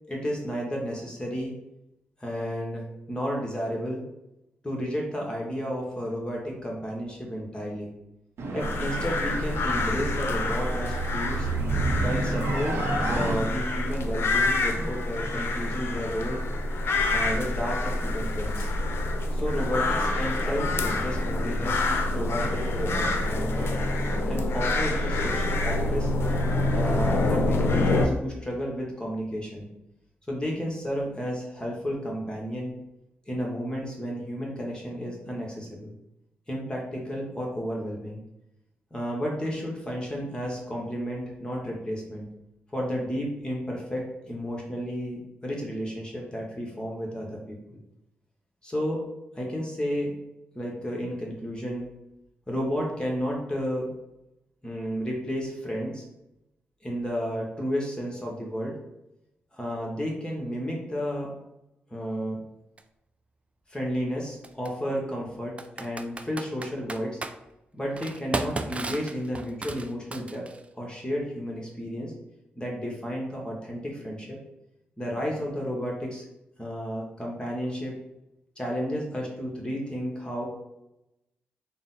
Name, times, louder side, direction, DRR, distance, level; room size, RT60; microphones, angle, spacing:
voice 1, 0.1-1.5 2.2-4.0 4.6-7.9 8.5-11.5 12.0-12.8 13.1-16.4 17.1-18.7 19.3-21.9 22.1-23.7 24.3-26.1 26.7-29.7 30.3-32.7 33.3-35.9 36.5-38.2 38.9-42.3 42.7-47.8 48.6-49.0 49.3-50.1 50.5-51.8 52.5-53.9 54.6-56.0 56.8-58.8 59.5-61.3 61.9-62.4 63.7-67.2 67.7-70.5 70.7-72.1 72.6-74.4 75.0-76.2 76.6-78.0 78.6-80.4, equal, 20° left, -2 dB, 1.1 m, -32 dB
sound 1, 8.4-13.4, right 3 dB, 75° right, 0.6 m, -31 dB
sound 2, 8.6-28.1, left 2 dB, 65° left, 0.5 m, -27 dB
Computer keyboard, 62.8-62.9 64.4-64.7 65.6-67.3 68.0-70.6, right 2 dB, 30° right, 0.3 m, -34 dB
3.7 x 2.0 x 4.0 m, 0.89 s
supercardioid pair, 50°, 4 cm